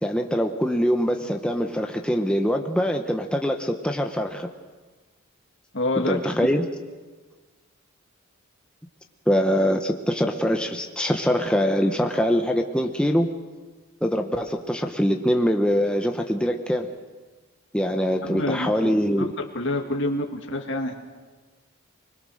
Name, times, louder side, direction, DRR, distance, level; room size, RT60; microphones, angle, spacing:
voice 1, 0.0-4.5 5.9-6.6 9.3-13.3 14.0-16.9 17.7-19.3, equal, 5° left, 3 dB, 1.0 m, -23 dB
voice 2, 5.7-6.2 18.2-18.7 19.2-20.9, left 1 dB, 55° left, 2 dB, 2.4 m, -27 dB
25.5 x 20.5 x 6.5 m, 1.3 s
head